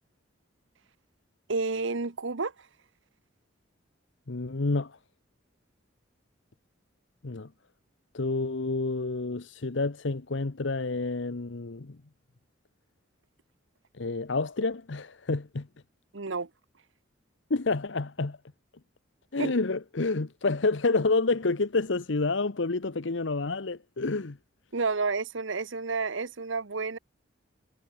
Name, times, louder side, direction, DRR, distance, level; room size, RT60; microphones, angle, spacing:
voice 1, 1.5-2.5 16.1-16.5 19.4-19.5 24.7-27.0, right 4 dB, 70° right, 1.0 m, -30 dB
voice 2, 4.3-5.0 7.2-7.5 8.1-12.0 13.9-15.7 17.5-18.4 19.3-24.4, left 3 dB, 65° left, 0.9 m, -29 dB
head